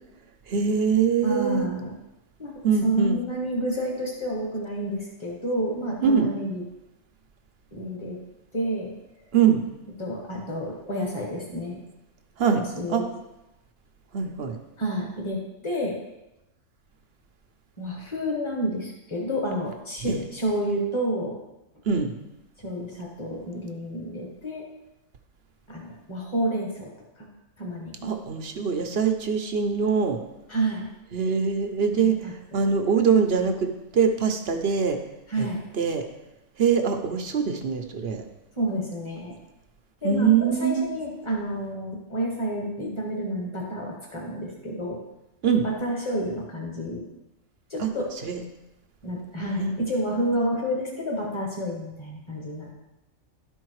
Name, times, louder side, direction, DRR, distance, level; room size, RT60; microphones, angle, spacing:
voice 1, 0.5-1.7 2.6-3.2 6.0-6.3 9.3-9.6 12.4-12.6 12.9-13.0 14.1-14.6 20.0-20.2 21.9-22.1 28.0-30.2 31.1-35.0 35.4-35.5 35.8-36.1 36.6-38.2 40.0-40.9 45.4-45.6 47.8-47.9 48.2-48.4 49.6-49.8, right 6 dB, 55° right, 5 dB, 0.9 m, -23 dB
voice 2, 1.2-1.9 2.4-2.5 2.8-6.6 7.7-8.2 8.5-8.9 10.0-11.8 12.7-13.0 14.8-15.9 17.8-21.3 22.6-24.6 25.7-26.9 27.2-27.3 27.6-28.1 30.5-30.8 31.9-32.6 35.3-35.6 38.6-39.3 40.0-45.0 45.6-47.0 47.7-48.1 49.0-52.7, right 1 dB, 20° left, -1 dB, 1.8 m, -29 dB
11.5 x 4.5 x 4.7 m, 0.96 s
omnidirectional pair, 1.4 m